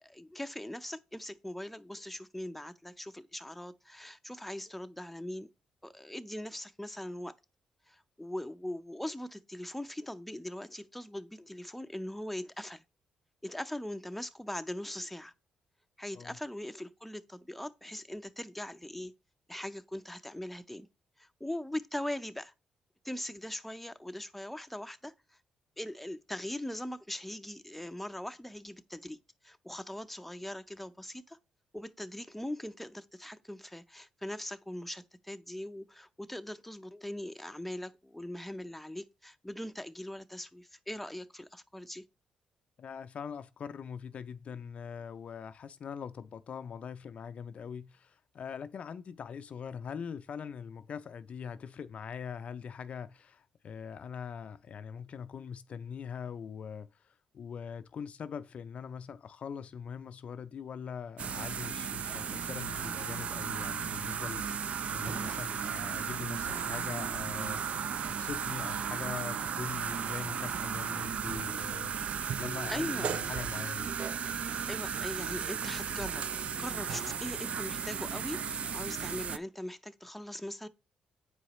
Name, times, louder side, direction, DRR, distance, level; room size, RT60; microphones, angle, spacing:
voice 1, 0.0-5.5 5.8-7.3 7.9-12.8 13.4-15.3 16.0-19.1 19.5-20.9 21.2-22.5 23.0-25.1 25.8-29.2 29.4-31.4 31.7-42.0 72.7-73.1 74.7-76.3 76.6-80.7, left 1 dB, 5° left, 0.5 m, -41 dB
voice 2, 42.8-71.9 72.4-73.9, left 7 dB, 55° left, 0.4 m, -42 dB
sound 1, 61.2-79.4, right 7 dB, 60° right, 0.4 m, -35 dB
8.0 x 4.8 x 2.9 m
supercardioid pair, 60°, 2 cm